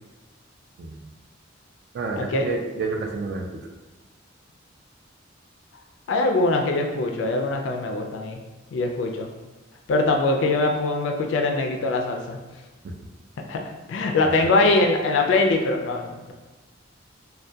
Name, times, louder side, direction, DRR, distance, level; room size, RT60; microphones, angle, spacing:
voice 1, 0.8-1.1 1.9-3.6 12.8-12.9 14.2-14.5, right 3 dB, 55° right, 2 dB, 0.3 m, -30 dB
voice 2, 6.1-8.4 8.7-9.3 9.9-12.4 13.5-13.6 13.9-16.3, left 2 dB, 70° left, 3 dB, 0.3 m, -22 dB
2.2 x 2.2 x 2.6 m, 1.2 s
head